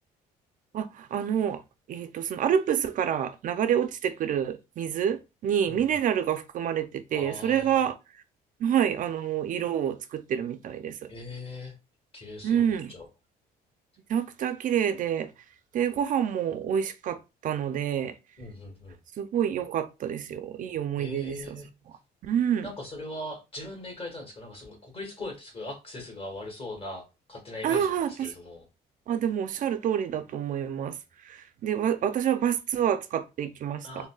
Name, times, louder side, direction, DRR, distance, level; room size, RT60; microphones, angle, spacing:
voice 1, 0.7-1.6 1.9-7.9 8.6-11.1 12.4-12.9 14.1-15.3 15.7-18.1 19.2-21.4 22.2-22.7 27.6-28.3 29.1-31.0 31.2-34.0, right 9 dB, 50° right, 0.4 m, -27 dB
voice 2, 7.1-7.8 11.1-11.7 12.1-13.1 18.4-19.0 21.0-21.7 22.6-28.7 33.8-34.1, left 2 dB, 35° left, 1.4 m, -40 dB
3.8 x 2.1 x 2.3 m
cardioid pair, 110°, 17 cm